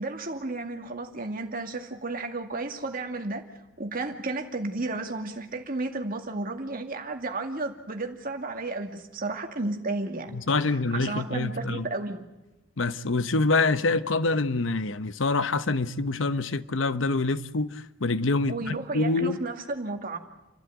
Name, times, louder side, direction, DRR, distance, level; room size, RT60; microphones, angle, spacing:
voice 1, 0.0-3.4 3.8-10.4 10.7-12.3 18.5-20.2, right 2 dB, 50° right, 2.3 m, -33 dB
voice 2, 10.3-11.9 12.8-19.4, left 3 dB, 80° left, 0.9 m, -26 dB
29.5 x 12.5 x 9.3 m
head